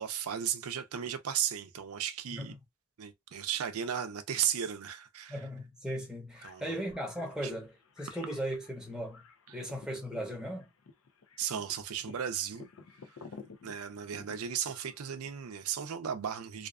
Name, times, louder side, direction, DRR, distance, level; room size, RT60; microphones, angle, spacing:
voice 1, 0.0-2.6 3.0-5.4 6.4-6.8 7.4-7.5 9.5-9.6 11.4-12.7 13.6-16.7, right 8 dB, 85° right, 0.5 m, -35 dB
voice 2, 5.3-9.2 9.5-10.7, equal, 5° right, 0.7 m, -37 dB
sound 1, 6.3-15.7, left 4 dB, 70° left, 0.5 m, -53 dB
2.4 x 2.3 x 2.3 m
head